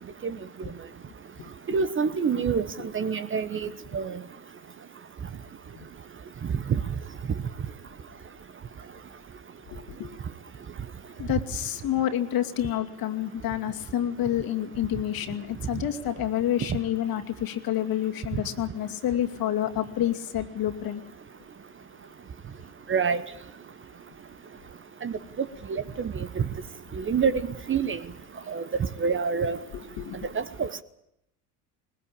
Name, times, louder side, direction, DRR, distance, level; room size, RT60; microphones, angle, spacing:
voice 1, 1.7-2.7 2.9-4.2 16.7-16.8 22.9-23.2 25.0-26.3 26.9-28.0 28.5-28.6 29.0-29.6 30.3-30.8, right 6 dB, 25° right, 1.1 m, -27 dB
voice 2, 9.7-10.1 11.2-21.0 30.0-30.2, left 11 dB, 50° left, 2.5 m, -28 dB
20.5 x 20.5 x 8.7 m
hypercardioid pair, 85°, 46 cm